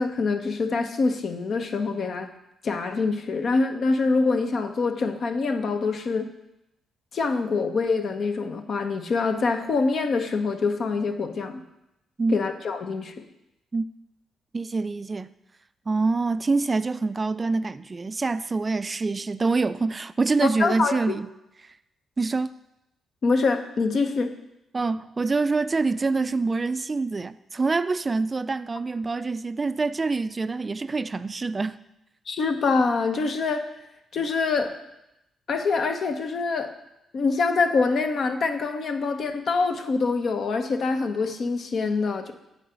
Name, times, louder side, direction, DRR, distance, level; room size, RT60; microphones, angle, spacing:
voice 1, 0.0-2.3 2.6-6.3 7.1-11.6 12.3-13.2 20.4-21.2 23.2-24.3 32.3-33.7 34.1-34.8 35.5-36.7 37.1-42.3, left 4 dB, 60° left, 0.8 m, -25 dB
voice 2, 14.5-15.3 15.9-21.3 22.2-22.5 24.7-31.8, right 3 dB, 35° right, 0.3 m, -25 dB
8.4 x 3.9 x 6.7 m
supercardioid pair, 50°, 0 cm